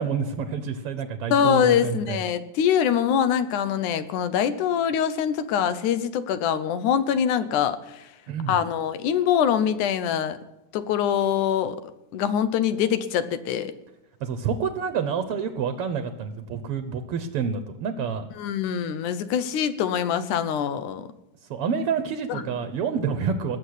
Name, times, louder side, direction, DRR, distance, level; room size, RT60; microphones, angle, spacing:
voice 1, 0.0-2.2 8.3-8.6 14.2-18.3 21.5-23.6, right 6 dB, 60° right, 10 dB, 1.7 m, -28 dB
voice 2, 1.3-8.1 8.5-10.4 10.7-13.7 18.4-21.0 22.3-22.4, left 8 dB, 85° left, 12 dB, 2.5 m, -24 dB
19.5 x 7.5 x 9.8 m, 0.93 s
omnidirectional pair, 3.4 m